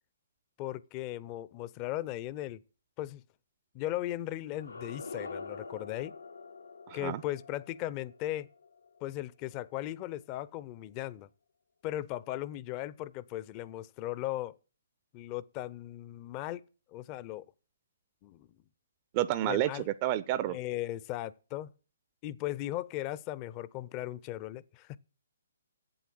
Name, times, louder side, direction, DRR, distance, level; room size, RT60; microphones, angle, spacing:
voice 1, 0.6-2.6 3.0-3.2 3.7-6.2 6.9-8.5 9.0-11.3 11.8-14.6 15.1-17.4 18.2-18.5 19.5-19.9 20.5-21.7 22.2-25.0, left 14 dB, 30° left, 0.5 m, -37 dB
sound 1, 4.5-9.4, left 4 dB, 80° left, 0.7 m, -46 dB
voice 2, 6.9-7.2 19.1-20.6, right 13 dB, 30° right, 0.4 m, -30 dB
8.2 x 7.8 x 7.6 m
figure-of-eight pair, 130°, 0 cm